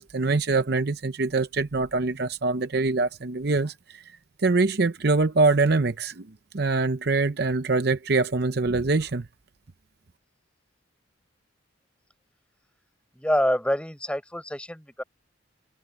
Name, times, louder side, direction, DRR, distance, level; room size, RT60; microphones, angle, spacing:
voice 1, 0.0-4.0 4.4-9.3, right 3 dB, 55° right, 0.7 m, -24 dB
voice 2, 13.2-15.0, equal, 5° left, 5.8 m, -26 dB
head